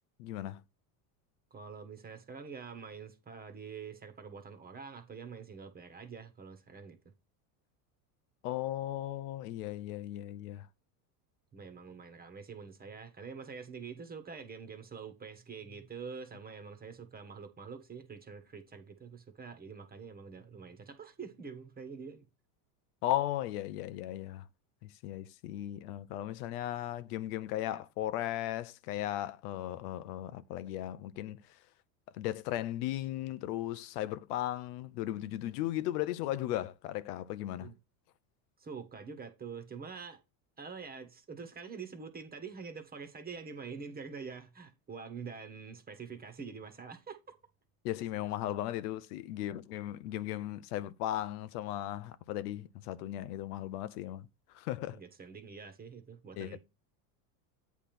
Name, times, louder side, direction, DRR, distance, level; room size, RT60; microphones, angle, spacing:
voice 1, 0.2-0.6 8.4-10.7 23.0-24.4 24.8-31.4 32.1-37.7 47.8-54.3 54.5-55.0 56.4-56.6, left 13 dB, 80° left, 0.8 m, -36 dB
voice 2, 1.5-7.0 11.5-22.3 37.6-37.7 38.6-40.2 40.6-47.3 54.9-56.6, right 5 dB, 20° right, 1.2 m, -46 dB
8.4 x 3.5 x 5.9 m
supercardioid pair, 125°, 46 cm